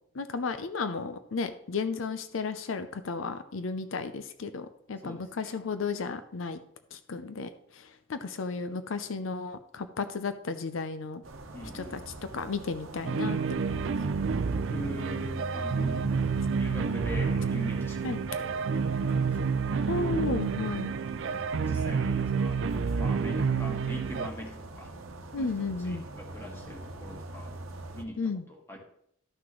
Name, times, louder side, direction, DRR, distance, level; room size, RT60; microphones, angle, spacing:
voice 1, 0.1-6.6 6.9-11.2 11.7-12.0 12.3-13.8 18.0-18.2 19.9-20.9 25.3-26.0 28.2-28.4, left 4 dB, 80° left, 10 dB, 0.6 m, -34 dB
voice 2, 5.0-5.5 11.5-12.0 14.5-19.9 21.1-22.6 22.9-24.9 25.3-27.5 27.9-28.8, left 1 dB, 10° left, -1 dB, 1.7 m, -43 dB
sound 1, 11.2-28.0, right 1 dB, 90° right, 1.0 m, -42 dB
sound 2, 13.1-24.3, right 5 dB, 65° right, 0.4 m, -29 dB
13.0 x 6.0 x 3.1 m, 0.72 s
head